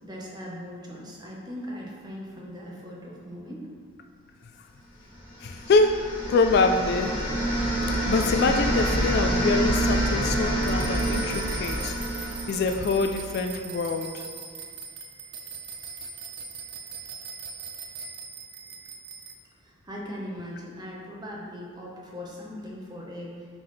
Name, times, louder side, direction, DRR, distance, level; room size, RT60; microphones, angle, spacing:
voice 1, 0.0-3.6 5.1-5.3 19.6-23.5, equal, 20° right, -3 dB, 1.0 m, -39 dB
sound 1, 5.3-13.3, right 1 dB, 25° left, 1.5 m, -27 dB
voice 2, 5.4-7.2 8.1-14.2, left 3 dB, 50° left, 5 dB, 0.3 m, -25 dB
sound 2, 10.6-19.3, right 5 dB, 55° right, 0.5 m, -40 dB
9.5 x 3.9 x 3.2 m, 2.1 s
head